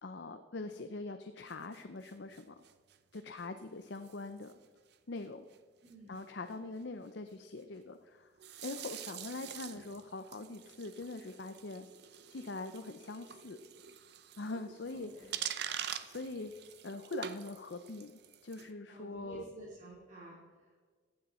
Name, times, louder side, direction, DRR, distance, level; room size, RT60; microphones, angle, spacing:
voice 1, 0.0-2.6 3.1-4.5 5.1-5.4 6.1-8.3 8.6-11.9 12.3-13.6 14.4-15.6 16.0-19.4, left 3 dB, 60° left, 8 dB, 0.6 m, -43 dB
sound 1, 1.5-3.4 3.9-4.2 4.4-4.7 4.9-5.0 5.2-5.3 5.5-5.6 5.9-6.2 8.4-18.7, right 9 dB, 55° right, 0.7 m, -45 dB
voice 2, 5.8-6.2 14.9-15.4 18.9-20.7, right 2 dB, 40° right, -7 dB, 3.0 m, -51 dB
15.0 x 9.6 x 4.3 m, 1.5 s
head